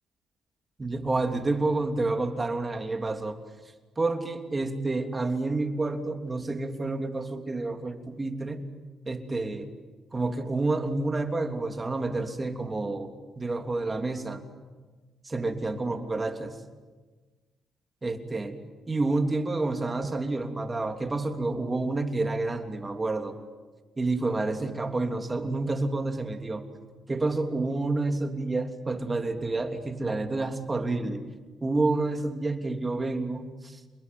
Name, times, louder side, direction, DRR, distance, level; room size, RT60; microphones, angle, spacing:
voice 1, 0.8-3.4 4.0-8.6 9.1-9.7 10.1-14.4 15.2-16.5 18.0-18.5 18.9-23.4 24.0-26.6 27.1-31.2 31.6-33.8, right 2 dB, 25° right, 6 dB, 3.2 m, -29 dB
29.5 x 21.0 x 9.5 m, 1.3 s
cardioid pair, 90°, 0 cm